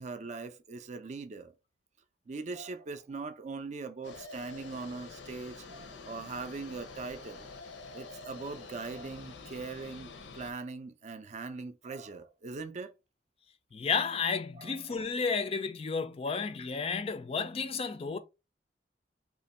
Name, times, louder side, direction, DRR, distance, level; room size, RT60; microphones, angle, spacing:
voice 1, 0.0-1.5 2.3-7.5 7.9-12.9 14.5-14.8, right 4 dB, 40° right, 0.4 m, -41 dB
sound 1, 4.0-10.5, left 4 dB, 80° left, 0.7 m, -47 dB
voice 2, 13.7-18.2, left 5 dB, 35° left, 0.4 m, -32 dB
2.9 x 2.5 x 4.0 m
head